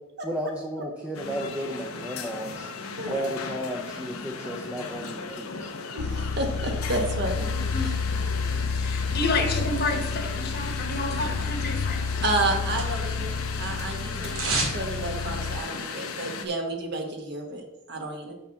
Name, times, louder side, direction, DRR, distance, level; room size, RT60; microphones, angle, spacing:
voice 1, 0.2-2.7 3.1-5.7, equal, 5° right, -1 dB, 0.6 m, -33 dB
sound 1, 1.1-16.5, left 4 dB, 90° left, 0.9 m, -36 dB
voice 2, 5.9-7.5 7.8-7.9 12.2-13.3 13.6-14.4 14.7-18.3, right 2 dB, 55° right, 2 dB, 1.4 m, -30 dB
sound 2, 6.0-15.6, left 4 dB, 65° left, 0.3 m, -30 dB
voice 3, 8.7-12.3, left 2 dB, 50° left, 4 dB, 1.2 m, -30 dB
sound 3, 12.0-13.3 13.5-14.8 15.1-15.2, right 3 dB, 80° right, 2.0 m, -31 dB
5.9 x 5.5 x 5.8 m, 0.98 s
head